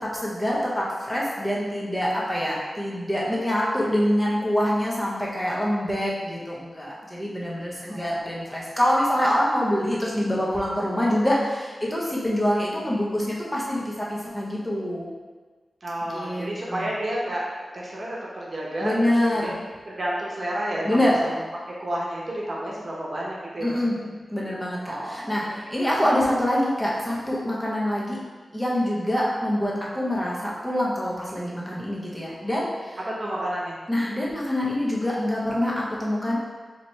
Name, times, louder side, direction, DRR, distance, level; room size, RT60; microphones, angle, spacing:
voice 1, 0.0-15.1 16.1-16.9 18.8-19.6 20.8-21.1 23.6-24.0 24.3-28.2 28.5-33.0 33.9-36.4, left 1 dB, 15° left, -5 dB, 1.0 m, -25 dB
voice 2, 7.9-8.3 15.8-21.3 21.7-24.1 24.8-25.6 33.0-33.7, right 1 dB, 50° right, -4 dB, 0.9 m, -31 dB
4.1 x 3.0 x 3.3 m, 1.4 s
cardioid pair, 50°, 0 cm